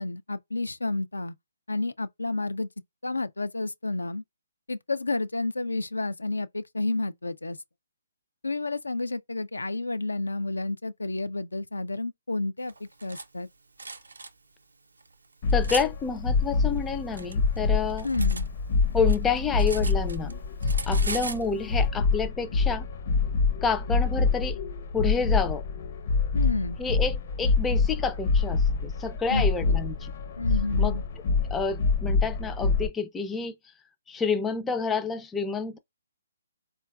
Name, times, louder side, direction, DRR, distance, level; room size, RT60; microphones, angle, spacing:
voice 1, 0.0-1.3 1.7-2.7 3.0-4.2 4.7-7.6 8.4-13.5 18.0-18.5 26.3-26.8 29.3-29.4 30.4-31.0, left 2 dB, 90° left, 0.3 m, -30 dB
Cutlery silverware, 12.7-13.3 13.8-14.3 15.0-15.9 16.8-18.5 18.8-20.3 20.6-21.5, right 3 dB, 80° right, 0.5 m, -38 dB
sound 1, 15.4-32.9, left 4 dB, 50° left, 0.6 m, -26 dB
voice 2, 15.5-18.1 18.9-20.3 20.9-22.9 23.6-24.6 24.9-25.6 26.8-30.1 30.8-31.0 31.4-33.5 34.1-35.8, left 5 dB, 10° left, 0.3 m, -29 dB
3.8 x 2.2 x 2.3 m
figure-of-eight pair, 140°, 0 cm